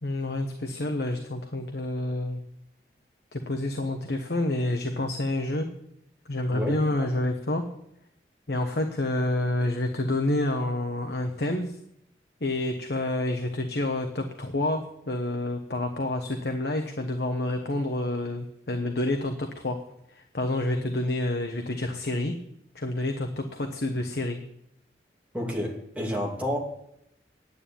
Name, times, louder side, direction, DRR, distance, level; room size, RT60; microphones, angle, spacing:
voice 1, 0.0-2.4 3.3-5.7 6.3-7.6 8.5-11.8 12.4-19.8 20.1-22.3 22.7-24.4, left 1 dB, 70° left, 5 dB, 1.2 m, -28 dB
voice 2, 25.3-26.6, equal, 10° right, -2 dB, 2.7 m, -29 dB
9.9 x 9.2 x 8.6 m, 0.77 s
head